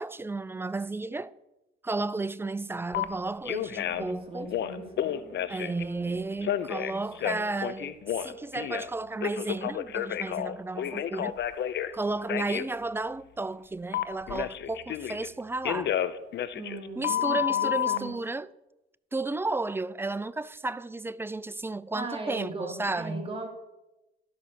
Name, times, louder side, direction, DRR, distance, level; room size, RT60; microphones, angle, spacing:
voice 1, 0.0-1.3 1.8-4.5 5.5-11.4 11.9-16.0 17.0-18.5 19.1-23.3, right 3 dB, 10° right, 0.3 m, -33 dB
Telephone, 2.9-3.0 3.4-4.1 4.5-5.8 6.4-8.9 9.2-11.9 12.3-12.7 13.9-15.3 15.6-18.0, left 11 dB, 60° left, 0.6 m, -30 dB
voice 2, 3.9-6.3 6.9-7.4 16.5-18.2 21.9-23.5, right 2 dB, 30° right, 2.4 m, -39 dB
12.0 x 5.5 x 6.5 m
cardioid pair, 90°, 20 cm